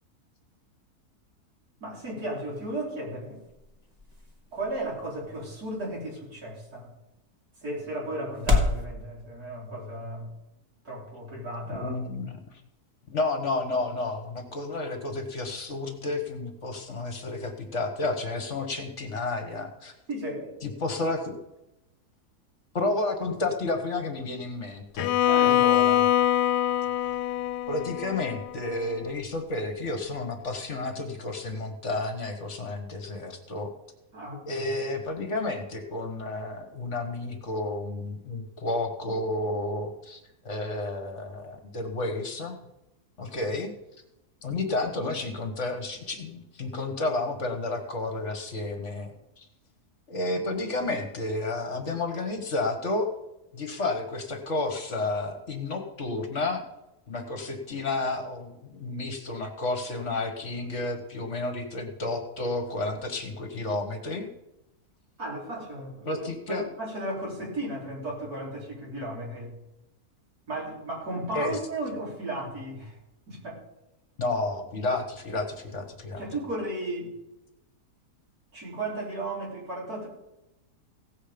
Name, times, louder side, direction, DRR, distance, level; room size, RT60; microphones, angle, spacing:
voice 1, 1.8-3.4 4.5-6.9 7.6-10.3 10.8-11.9 20.1-20.5 25.3-25.7 34.1-34.6 65.2-69.5 70.5-73.0 73.3-73.6 76.2-77.1 78.5-80.1, right 1 dB, 70° right, -3 dB, 4.2 m, -35 dB
sound 1, 2.6-8.8, left 3 dB, 25° right, 1.7 m, -33 dB
voice 2, 11.7-12.4 13.1-19.9 20.6-21.3 22.7-25.1 25.4-26.1 27.7-33.7 34.5-42.6 43.2-43.7 44.4-49.1 49.4-49.5 50.1-53.1 53.5-56.6 57.1-64.3 66.0-66.7 71.3-71.6 74.2-76.2, left 2 dB, 50° left, 5 dB, 1.6 m, -31 dB
Bowed string instrument, 25.0-29.0, left 11 dB, 90° left, 1.2 m, -24 dB
16.5 x 7.5 x 5.1 m, 0.93 s
omnidirectional pair, 1.7 m